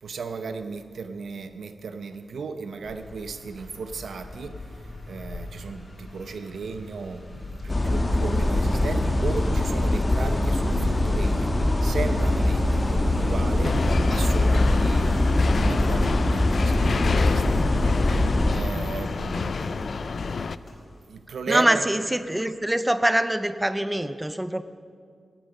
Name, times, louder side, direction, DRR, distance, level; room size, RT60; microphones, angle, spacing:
voice 1, 0.0-4.6 5.1-11.5 11.8-15.2 15.5-17.7 18.0-20.5 21.1-21.8, right 4 dB, 90° right, 9 dB, 0.8 m, -35 dB
sound 1, 2.8-21.0, left 2 dB, 40° left, 2.9 m, -35 dB
sound 2, 7.7-18.6, left 1 dB, 25° left, 1.2 m, -22 dB
sound 3, 13.6-20.6, left 5 dB, 55° left, 0.3 m, -29 dB
voice 2, 21.5-24.6, right 1 dB, 10° right, 11 dB, 0.5 m, -24 dB
17.0 x 8.9 x 6.5 m, 2.2 s
wide cardioid pair, 140°, 0 cm